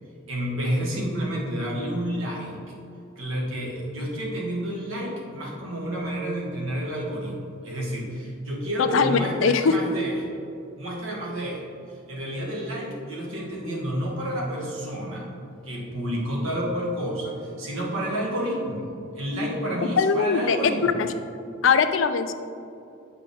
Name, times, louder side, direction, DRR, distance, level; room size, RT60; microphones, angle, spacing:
voice 1, 0.3-2.6 3.2-10.2 10.8-11.6 12.1-15.3 15.6-18.9 19.1-21.0, right 1 dB, 85° right, -3 dB, 1.5 m, -30 dB
voice 2, 8.8-9.8 20.0-21.1 21.6-22.3, left 5 dB, 70° left, 10 dB, 0.4 m, -21 dB
7.7 x 4.9 x 3.4 m, 2.5 s
head